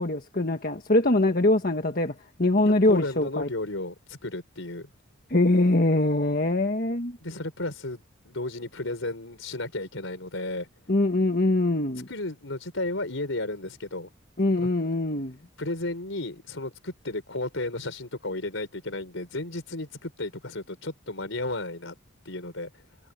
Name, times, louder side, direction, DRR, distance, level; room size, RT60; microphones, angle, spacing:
voice 1, 0.0-2.1 2.4-3.5 5.3-7.2 10.9-12.1 14.4-15.3, left 2 dB, 45° left, 1.5 m, -23 dB
voice 2, 2.7-4.9 7.2-10.7 12.1-14.1 14.6-14.7 15.6-22.0 22.2-22.7, left 2 dB, 75° left, 4.4 m, -33 dB
head